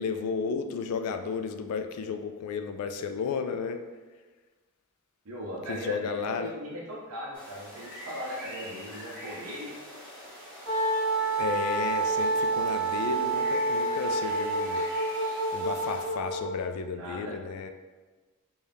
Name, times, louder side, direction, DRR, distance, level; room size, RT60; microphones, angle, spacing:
voice 1, 0.0-3.8 5.7-6.5 11.4-14.8 15.5-17.7, left 5 dB, 85° left, 7 dB, 0.3 m, -33 dB
voice 2, 5.2-9.7 16.9-17.3, equal, 70° right, -4 dB, 0.6 m, -38 dB
sound 1, 7.3-16.0, equal, 5° left, 1.0 m, -44 dB
Wind instrument woodwind instrument, 10.6-16.6, right 2 dB, 30° right, 1.4 m, -28 dB
4.1 x 2.3 x 3.3 m, 1.3 s
head